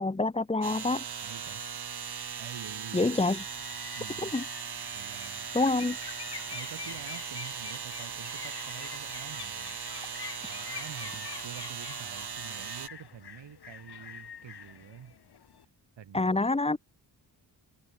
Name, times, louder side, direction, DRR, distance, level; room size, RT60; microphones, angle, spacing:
voice 1, 0.0-1.0 2.9-3.4 4.2-4.4 5.5-6.0 16.1-16.8, left 2 dB, 15° left, 0.9 m, -27 dB
sound 1, 0.6-12.9, right 6 dB, 60° right, 8.0 m, -39 dB
voice 2, 1.2-1.6 2.4-3.1 3.9-4.3 4.9-5.5 6.5-9.8 10.4-15.2 16.0-16.4, right 8 dB, 80° right, 6.7 m, -47 dB
sound 2, 3.2-15.6, left 7 dB, 60° left, 2.9 m, -46 dB
cardioid pair, 75°, 43 cm